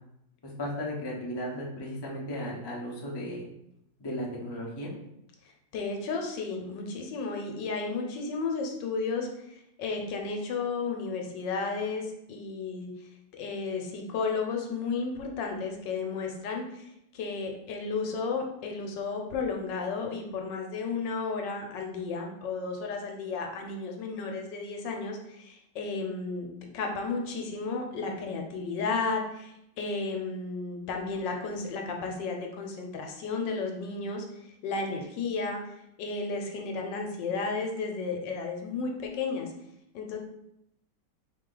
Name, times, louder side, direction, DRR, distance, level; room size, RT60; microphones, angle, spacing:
voice 1, 0.4-3.4 4.0-4.9, equal, 30° left, -2 dB, 0.4 m, -35 dB
voice 2, 5.7-12.9 13.3-39.5 39.9-40.2, left 4 dB, 75° left, 2 dB, 1.3 m, -33 dB
4.1 x 2.9 x 3.8 m, 0.80 s
omnidirectional pair, 2.0 m